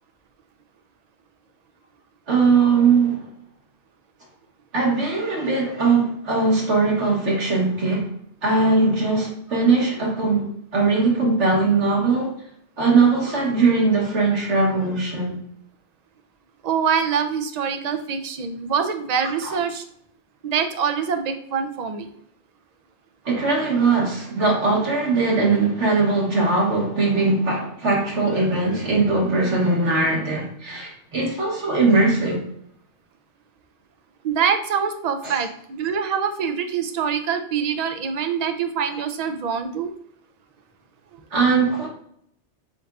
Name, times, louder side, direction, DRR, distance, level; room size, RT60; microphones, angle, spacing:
voice 1, 2.3-3.3 4.7-8.1 8.4-12.3 12.8-15.4 19.4-19.6 23.3-32.4 35.2-35.4 41.3-41.9, right 3 dB, 80° right, 1.8 m, -20 dB
voice 2, 16.6-19.8 20.4-22.1 34.2-39.9, right 7 dB, 55° right, 0.4 m, -24 dB
7.8 x 2.6 x 2.3 m
omnidirectional pair, 1.2 m